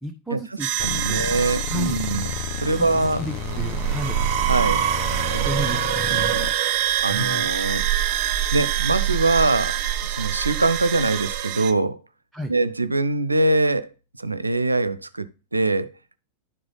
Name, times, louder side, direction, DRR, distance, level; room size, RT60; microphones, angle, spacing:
voice 1, 0.0-1.2 1.7-2.0 2.7-4.2 5.4-6.7 7.0-7.5 12.3-12.5, equal, 5° right, 1.0 m, -32 dB
sound 1, 0.6-11.7, right 12 dB, 40° right, 1.0 m, -25 dB
sound 2, 0.8-6.5, left 7 dB, 45° left, 0.7 m, -31 dB
voice 2, 0.8-3.3 4.4-4.8 5.3-5.8 6.1-6.5 7.0-7.9 8.5-12.0 12.5-13.9 14.2-15.9, right 2 dB, 80° right, 0.6 m, -23 dB
11.0 x 4.7 x 3.9 m
figure-of-eight pair, 90°, 0 cm